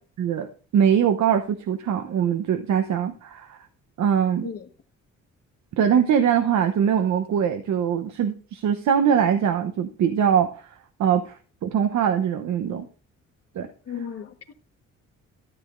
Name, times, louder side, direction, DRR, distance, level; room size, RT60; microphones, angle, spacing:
voice 1, 0.2-3.6 4.0-4.5 5.8-10.7 11.0-12.8 13.5-13.7, right 8 dB, 70° right, 0.9 m, -22 dB
voice 2, 13.9-14.5, left 7 dB, 50° left, 1.5 m, -35 dB
13.0 x 8.7 x 2.6 m
cardioid pair, 90°, 30 cm